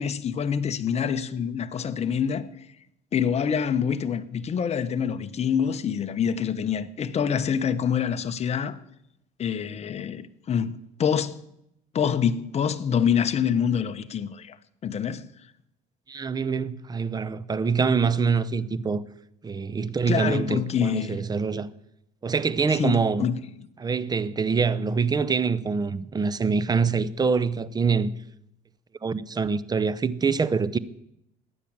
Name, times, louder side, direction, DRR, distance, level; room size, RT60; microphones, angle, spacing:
voice 1, 0.0-2.5 3.1-8.8 9.4-11.4 11.9-14.6 14.8-15.3 20.1-21.2 22.7-23.4, left 7 dB, 40° left, 1.1 m, -26 dB
voice 2, 16.1-19.0 19.4-21.7 22.2-23.3 23.8-28.1 29.0-30.8, right 5 dB, 25° right, 0.8 m, -25 dB
15.0 x 10.0 x 8.8 m
cardioid pair, 115°, 18 cm